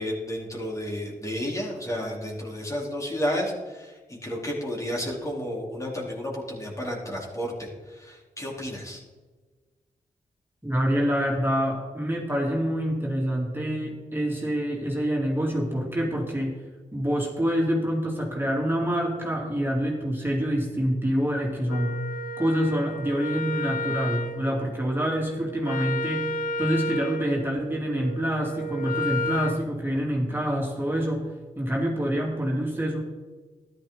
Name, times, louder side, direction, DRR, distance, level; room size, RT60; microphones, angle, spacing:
voice 1, 0.0-9.0, equal, 20° left, -3 dB, 3.7 m, -32 dB
voice 2, 10.6-16.5 16.9-22.0 22.4-31.3 31.6-33.0, equal, 15° right, -3 dB, 3.3 m, -26 dB
Wind instrument woodwind instrument, 21.7-29.6, equal, 80° left, 0.9 m, -32 dB
13.0 x 11.5 x 4.0 m, 1.3 s
cardioid pair, 55°, 14 cm